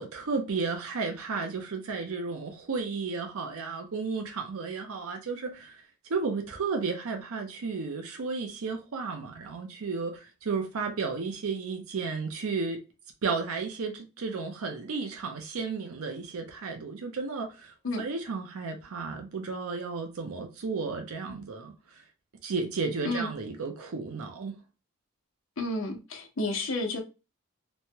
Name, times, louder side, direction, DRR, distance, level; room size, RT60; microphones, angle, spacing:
voice 1, 0.0-12.8 13.2-22.0 22.4-24.6, right 4 dB, 75° right, 0.5 m, -33 dB
voice 2, 25.6-27.0, left 2 dB, 65° left, 0.7 m, -31 dB
3.0 x 2.2 x 2.8 m
head